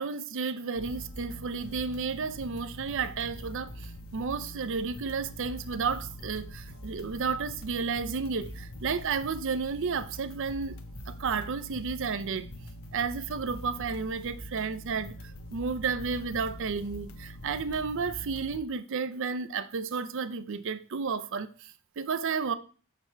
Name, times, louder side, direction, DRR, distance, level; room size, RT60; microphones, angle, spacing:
voice 1, 0.0-10.8 11.1-12.5 12.9-15.2 15.5-22.5, right 5 dB, 65° right, 0.5 m, -32 dB
sound 1, 0.8-18.6, equal, 80° left, 1.0 m, -43 dB
6.8 x 5.9 x 4.4 m
head